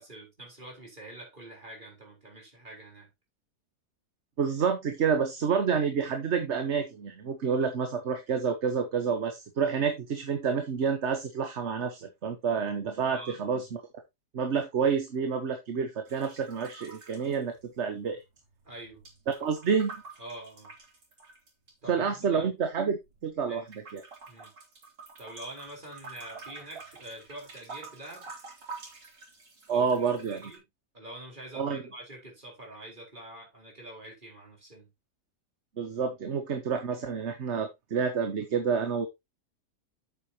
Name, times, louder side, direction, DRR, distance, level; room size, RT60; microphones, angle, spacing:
voice 1, 0.0-3.1 13.1-13.4 18.6-19.0 20.2-20.7 21.8-22.5 23.5-23.7 24.3-24.5 25.2-28.3 29.7-30.6 30.9-34.9, right 1 dB, 25° right, 4.5 m, -45 dB
voice 2, 4.4-13.8 14.3-18.2 19.4-20.0 21.9-23.6 23.9-24.0 29.7-30.4 31.5-31.8 35.8-39.1, right 6 dB, 45° right, 1.3 m, -29 dB
sound 1, 16.1-18.1 18.4-21.7 22.4-23.3 23.7-30.6, right 4 dB, 90° right, 3.8 m, -48 dB
8.3 x 8.2 x 2.9 m
omnidirectional pair, 1.8 m